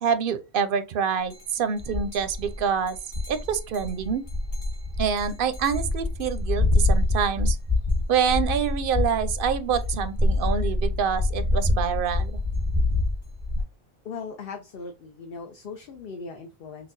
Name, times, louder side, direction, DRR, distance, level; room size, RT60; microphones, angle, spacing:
voice 1, 0.0-3.0 3.3-4.2 5.0-7.6 8.1-12.4, right 7 dB, 65° right, 0.7 m, -26 dB
sound 1, 1.3-1.4 1.8-13.6, left 2 dB, 30° left, 1.4 m, -26 dB
voice 2, 14.0-16.9, left 5 dB, 60° left, 0.8 m, -38 dB
5.9 x 2.3 x 2.5 m
omnidirectional pair, 1.1 m